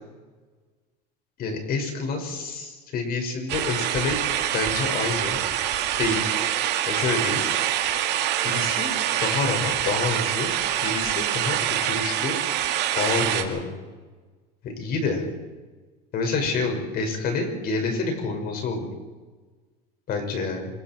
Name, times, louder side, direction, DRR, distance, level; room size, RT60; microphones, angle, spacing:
voice 1, 1.4-4.2 4.5-5.4 6.0-6.3 6.9-7.4 8.4-8.9 9.2-10.5 10.8-11.6 11.8-12.4 12.9-13.7 14.6-15.2 16.1-18.9 20.1-20.7, left 4 dB, 45° left, 3 dB, 6.0 m, -27 dB
sound 1, 3.5-13.4, right 11 dB, 55° right, 2.5 m, -25 dB
25.5 x 22.5 x 4.7 m, 1.3 s
supercardioid pair, 120°, 21 cm